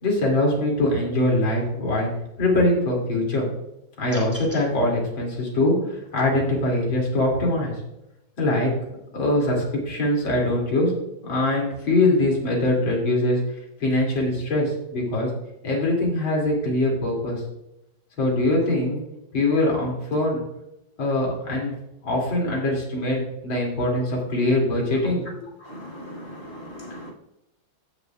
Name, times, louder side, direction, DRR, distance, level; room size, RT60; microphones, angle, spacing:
voice 1, 0.0-2.1 2.4-3.5 4.0-7.7 8.4-8.7 9.1-10.9 11.2-13.4 13.8-15.3 15.6-17.4 18.2-19.0 19.3-20.4 21.0-21.7 22.0-25.5, left 1 dB, 80° left, -2 dB, 3.4 m, -22 dB
sound 1, 4.1-4.7, equal, 5° right, 2.6 m, -39 dB
voice 2, 25.6-27.1, equal, 40° left, -3 dB, 3.3 m, -39 dB
15.0 x 7.1 x 2.3 m, 0.86 s
omnidirectional pair, 2.1 m